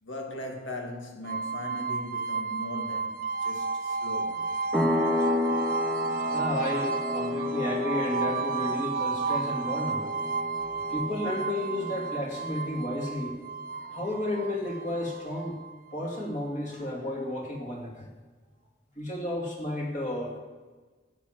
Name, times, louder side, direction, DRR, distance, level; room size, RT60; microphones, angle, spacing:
voice 1, 0.0-4.5, left 1 dB, 85° left, 2.2 m, -39 dB
sound 1, 1.2-16.2, right 4 dB, 45° right, 0.9 m, -32 dB
sound 2, 4.7-13.1, left 2 dB, ahead, 0.9 m, -32 dB
voice 2, 6.2-10.1 10.9-13.3 13.7-15.6 15.9-18.1 19.0-20.4, left 1 dB, 40° left, 2.7 m, -32 dB
13.0 x 8.8 x 7.5 m
head